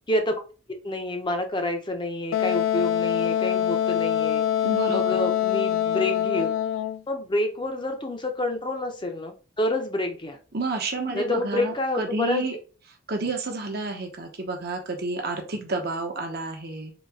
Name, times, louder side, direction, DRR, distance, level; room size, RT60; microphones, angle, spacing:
voice 1, 0.1-0.4 0.8-4.4 4.9-6.5 7.1-10.4 11.1-12.5, left 1 dB, 25° left, 5 dB, 0.7 m, -28 dB
Wind instrument woodwind instrument, 2.3-7.0, left 10 dB, 75° left, 0.3 m, -24 dB
voice 2, 4.6-5.2 10.5-12.6 13.1-16.9, right 3 dB, 50° right, 3 dB, 1.0 m, -30 dB
4.0 x 2.9 x 3.5 m, 0.35 s
head